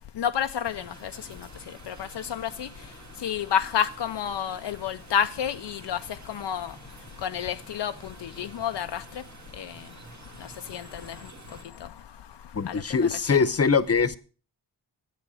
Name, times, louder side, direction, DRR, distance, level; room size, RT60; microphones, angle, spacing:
voice 1, 0.2-1.1 1.9-2.7 3.2-6.0 6.3-6.7 7.2-9.0 9.6-9.8 10.7-11.2 12.7-13.4, left 9 dB, 75° left, 0.6 m, -29 dB
sound 1, 0.6-11.6, right 2 dB, 40° right, 1.9 m, -49 dB
voice 2, 12.5-14.2, left 5 dB, 35° left, 0.9 m, -22 dB
10.0 x 8.1 x 6.3 m
cardioid pair, 50°, 42 cm